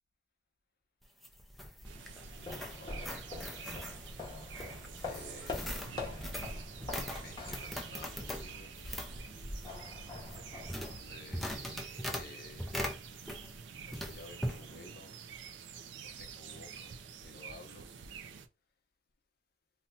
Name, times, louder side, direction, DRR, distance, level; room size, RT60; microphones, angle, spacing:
sound 1, 1.0-13.6 13.9-14.6, equal, ahead, 0.4 m, -41 dB
sound 2, 1.8-11.5, left 3 dB, 25° left, 0.8 m, -45 dB
sound 3, 1.8-18.5, right 6 dB, 80° right, 0.4 m, -48 dB
voice 1, 2.4-3.2 5.0-5.8 7.2-8.9 10.5-12.7 13.8-15.1 16.2-17.9, left 3 dB, 55° left, 0.7 m, -53 dB
2.7 x 2.2 x 4.0 m
head